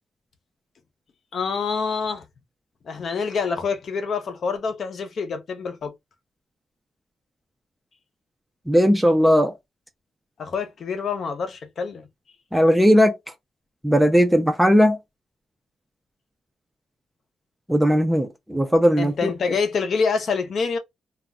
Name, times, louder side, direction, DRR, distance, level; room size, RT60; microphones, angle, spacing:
voice 1, 1.3-2.3 2.8-5.9 10.4-12.1 19.0-20.8, left 5 dB, 45° left, 0.6 m, -26 dB
voice 2, 8.7-9.6 12.5-13.2 13.8-15.0 17.7-19.3, equal, 5° right, 0.4 m, -17 dB
2.3 x 2.1 x 3.5 m
wide cardioid pair, 175°, 0 cm